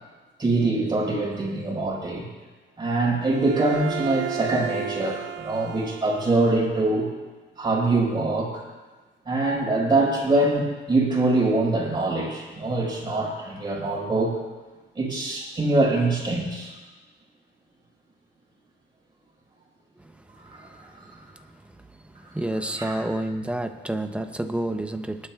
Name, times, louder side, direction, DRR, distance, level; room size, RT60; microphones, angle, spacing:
voice 1, 0.4-2.2 2.8-7.1 7.6-8.6 9.2-14.4 14.9-16.7 20.4-20.9 22.7-22.9, right 2 dB, 25° right, -5 dB, 4.8 m, -24 dB
Bowed string instrument, 3.2-6.7, right 10 dB, 85° right, 0.5 m, -35 dB
voice 2, 22.3-25.2, right 1 dB, 5° right, 7 dB, 0.7 m, -28 dB
22.5 x 11.0 x 2.3 m, 1.3 s
wide cardioid pair, 140°, 19 cm